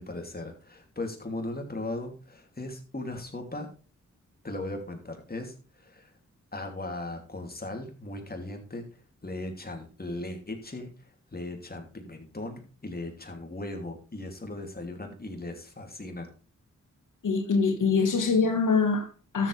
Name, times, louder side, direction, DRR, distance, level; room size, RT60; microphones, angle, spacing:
voice 1, 0.0-3.7 4.4-6.1 6.5-8.9 9.2-16.3, left 2 dB, 30° left, 2.9 m, -38 dB
voice 2, 17.2-19.5, left 4 dB, 85° left, 1.7 m, -24 dB
12.5 x 7.6 x 3.4 m
cardioid pair, 50°, 30 cm